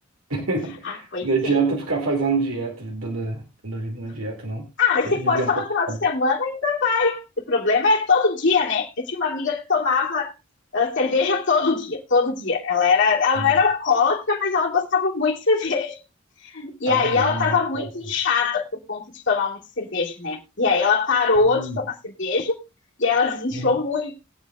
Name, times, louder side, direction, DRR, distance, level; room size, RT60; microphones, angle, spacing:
voice 1, 0.3-4.7 5.0-6.0 13.4-13.6 16.9-17.9 21.4-21.8 23.5-23.8, right 3 dB, 80° right, 2.3 m, -27 dB
voice 2, 0.8-1.5 4.8-7.2 7.5-10.3 10.7-16.0 16.4-22.6 23.0-24.1, left 4 dB, 60° left, 2.7 m, -22 dB
20.5 x 8.4 x 2.3 m
head